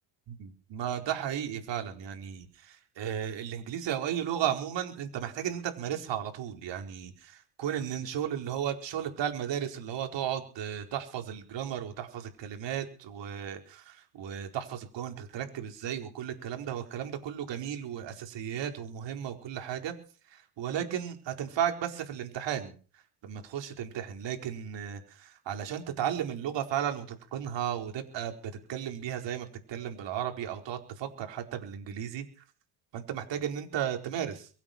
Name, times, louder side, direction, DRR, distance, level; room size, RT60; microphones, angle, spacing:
voice 1, 0.3-19.9 20.3-22.8 23.2-32.2 32.9-34.5, right 9 dB, 60° right, 5 dB, 4.6 m, -34 dB
23.0 x 9.1 x 6.1 m, 0.40 s
supercardioid pair, 95°, 50 cm